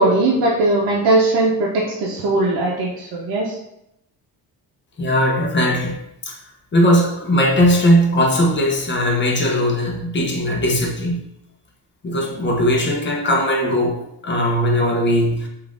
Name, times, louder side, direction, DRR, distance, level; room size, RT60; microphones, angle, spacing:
voice 1, 0.0-3.6, right 2 dB, 90° right, -4 dB, 0.6 m, -19 dB
voice 2, 5.0-6.0 6.2-6.4 6.7-11.2 12.0-15.5, equal, 30° left, 1 dB, 0.6 m, -18 dB
3.2 x 2.5 x 2.5 m, 0.81 s
cardioid pair, 105°, 37 cm